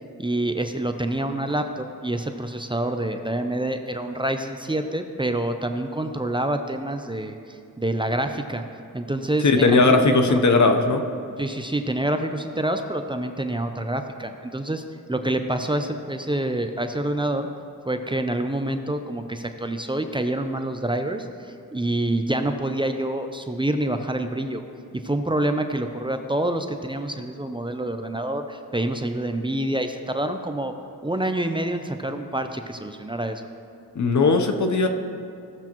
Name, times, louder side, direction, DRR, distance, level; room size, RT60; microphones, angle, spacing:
voice 1, 0.2-8.6 8.9-10.4 11.4-14.8 15.1-17.5 17.9-21.3 21.7-24.6 24.9-30.7 31.0-33.5, right 1 dB, 15° right, 6 dB, 0.6 m, -27 dB
voice 2, 9.4-11.0 33.9-34.9, left 3 dB, 55° left, 6 dB, 0.9 m, -18 dB
15.5 x 7.0 x 3.0 m, 2.4 s
cardioid pair, 60°, 34 cm